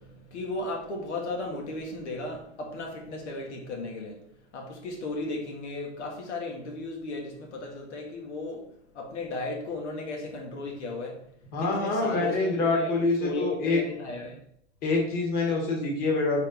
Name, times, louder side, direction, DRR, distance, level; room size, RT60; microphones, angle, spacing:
voice 1, 0.0-11.3 11.6-12.9 13.2-14.4, left 2 dB, 75° left, 0 dB, 1.6 m, -35 dB
voice 2, 11.5-13.8 14.8-16.5, left 3 dB, 25° left, 0 dB, 1.2 m, -26 dB
4.1 x 3.4 x 3.9 m, 0.70 s
hypercardioid pair, 150°, 35 cm